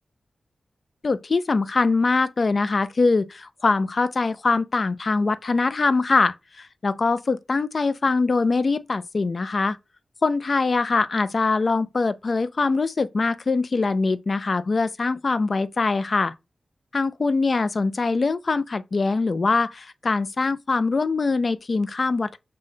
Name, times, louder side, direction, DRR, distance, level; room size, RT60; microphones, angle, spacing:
voice 1, 1.0-9.8 10.2-16.3 16.9-22.4, left 3 dB, 50° left, 0.3 m, -23 dB
5.5 x 2.1 x 3.8 m
wide cardioid pair, 95°, 0 cm